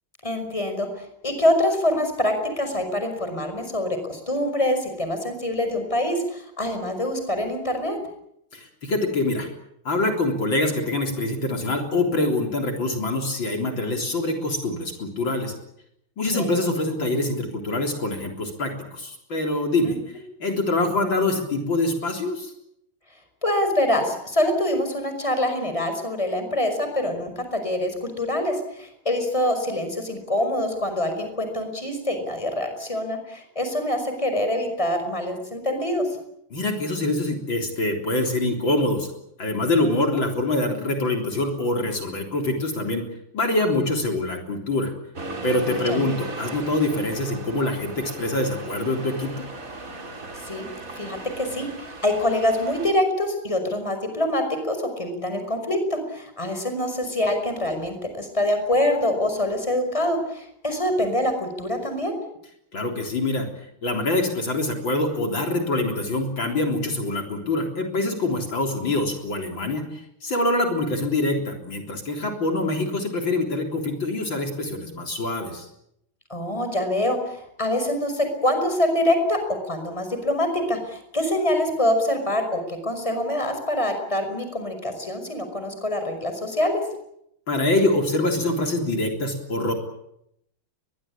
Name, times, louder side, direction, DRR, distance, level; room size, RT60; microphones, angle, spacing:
voice 1, 0.2-8.0 16.3-16.5 19.8-20.0 23.4-36.1 39.8-40.2 45.9-46.0 50.4-50.7 51.0-62.1 76.3-79.4 79.6-86.8, left 1 dB, 15° left, 7 dB, 5.4 m, -25 dB
voice 2, 8.5-9.5 9.8-15.5 16.2-20.0 20.4-22.5 36.5-39.1 39.4-43.0 43.3-44.9 45.4-49.3 62.7-63.5 63.8-75.7 87.5-89.7, left 2 dB, 65° left, 3 dB, 4.4 m, -25 dB
Accelerating revving vroom, 45.2-52.9, right 2 dB, 40° right, 3.4 m, -37 dB
23.0 x 22.0 x 8.6 m, 0.76 s
omnidirectional pair, 2.3 m